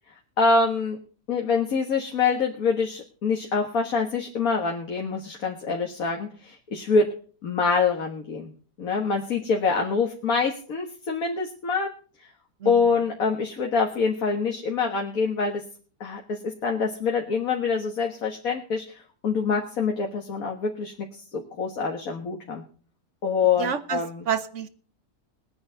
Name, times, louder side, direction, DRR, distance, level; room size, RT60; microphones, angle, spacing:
voice 1, 0.4-1.0 1.3-7.1 7.4-8.5 8.8-11.9 12.7-15.6 16.0-19.0 19.2-20.9 21.3-22.6 23.2-24.3, left 4 dB, 60° left, 1 dB, 2.0 m, -25 dB
voice 2, 23.6-24.0 24.3-24.7, right 7 dB, 50° right, 13 dB, 1.3 m, -28 dB
21.0 x 9.6 x 3.9 m, 0.40 s
omnidirectional pair, 1.7 m